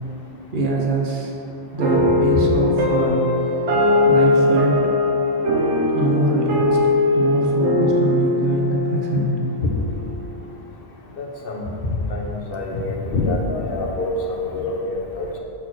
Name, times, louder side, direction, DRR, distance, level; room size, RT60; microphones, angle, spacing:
voice 1, 0.5-3.2 4.0-4.9 5.9-6.8 7.1-9.5 10.5-10.6 14.5-14.7, right 2 dB, 50° right, -1 dB, 1.1 m, -23 dB
sound 1, 1.8-10.3, left 2 dB, 75° right, 1.2 m, -20 dB
voice 2, 11.2-11.7 12.1-15.4, left 2 dB, 55° left, 0 dB, 1.1 m, -26 dB
6.3 x 4.3 x 6.1 m, 2.7 s
omnidirectional pair, 1.2 m